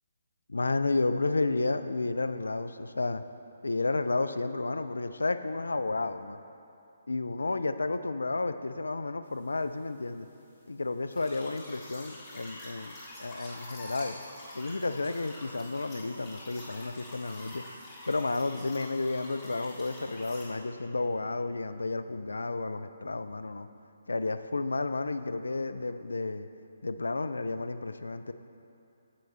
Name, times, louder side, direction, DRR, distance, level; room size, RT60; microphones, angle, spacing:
voice 1, 0.5-3.2 3.6-6.4 7.1-10.3 10.7-12.9 13.2-14.2 14.5-17.6 18.1-23.7 24.1-26.5 26.8-28.3, left 3 dB, 75° left, 10 dB, 0.3 m, -31 dB
sound 1, 11.1-20.5, left 1 dB, 25° left, 1.6 m, -46 dB
8.4 x 7.7 x 3.2 m, 2.7 s
figure-of-eight pair, 140°, 0 cm